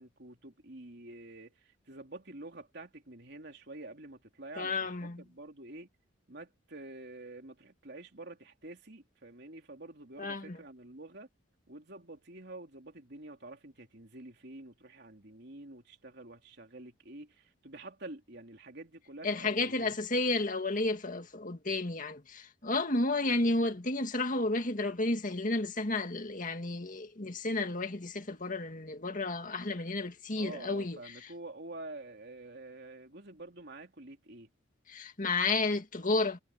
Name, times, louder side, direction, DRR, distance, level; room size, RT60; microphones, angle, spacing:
voice 1, 0.0-5.9 6.3-11.3 11.7-19.9 30.4-34.5, right 2 dB, 60° right, 3.3 m, -48 dB
voice 2, 4.6-5.2 10.2-10.6 19.2-31.3 34.9-36.4, left 2 dB, 45° left, 2.0 m, -32 dB
head